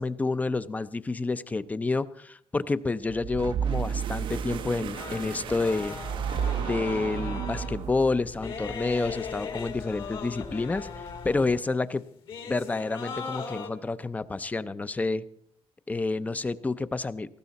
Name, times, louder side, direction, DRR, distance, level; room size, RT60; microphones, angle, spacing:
voice 1, 0.0-6.0 6.6-12.0 12.5-15.2 15.9-17.4, left 3 dB, 15° left, 14 dB, 0.5 m, -29 dB
sound 1, 3.1-8.3, right 8 dB, 60° right, 0.5 m, -32 dB
sound 2, 4.2-6.6 6.9-11.6, left 4 dB, 40° left, 1.5 m, -45 dB
sound 3, 4.5-11.8 12.3-13.7, left 5 dB, 60° left, 2.2 m, -39 dB
18.5 x 15.0 x 4.1 m, 0.67 s
cardioid pair, 155°, 10 cm